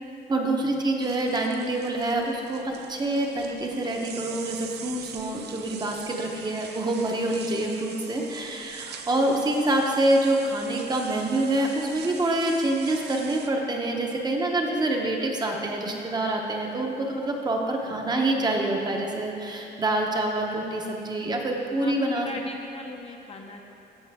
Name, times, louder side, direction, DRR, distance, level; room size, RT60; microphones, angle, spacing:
voice 1, 0.3-22.3, right 1 dB, 25° right, 1 dB, 0.7 m, -26 dB
sound 1, 1.0-13.5, right 8 dB, 70° right, 0.5 m, -43 dB
voice 2, 17.8-18.2 21.8-22.0 22.2-23.6, left 2 dB, 35° left, 2 dB, 0.6 m, -40 dB
15.0 x 5.6 x 3.4 m, 2.8 s
cardioid pair, 165°, 18 cm